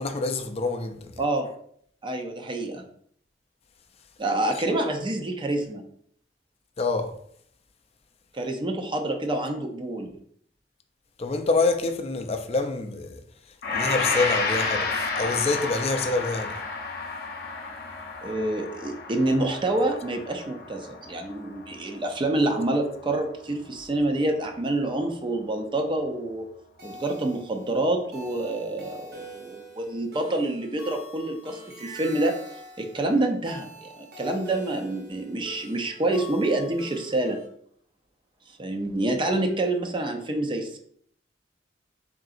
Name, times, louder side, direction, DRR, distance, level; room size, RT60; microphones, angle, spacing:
voice 1, 0.0-1.2 6.8-7.1 11.2-13.2 13.7-16.6, left 3 dB, 35° left, 0.4 m, -26 dB
voice 2, 1.2-1.5 2.0-2.8 4.2-5.8 8.3-10.1 18.2-26.5 26.8-32.3 32.8-37.4 38.6-40.8, right 2 dB, 30° right, 0.5 m, -27 dB
Gong, 13.6-22.0 22.4-22.6, left 3 dB, 60° left, 0.8 m, -31 dB
sound 1, 26.8-37.5, equal, 60° right, 1.0 m, -45 dB
3.8 x 3.7 x 2.4 m
head